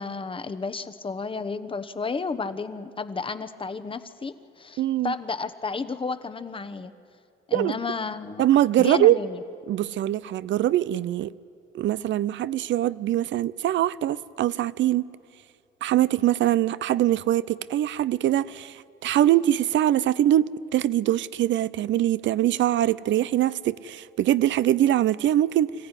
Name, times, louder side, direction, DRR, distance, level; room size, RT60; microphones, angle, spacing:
voice 1, 0.0-6.9 7.5-8.5 8.8-9.4, left 4 dB, 25° left, 1.0 m, -32 dB
voice 2, 4.8-5.1 7.5-7.8 8.4-9.2 9.7-11.3 11.7-15.0 15.8-25.7, right 12 dB, 70° right, 0.5 m, -23 dB
25.5 x 15.0 x 9.8 m
cardioid pair, 90°, 20 cm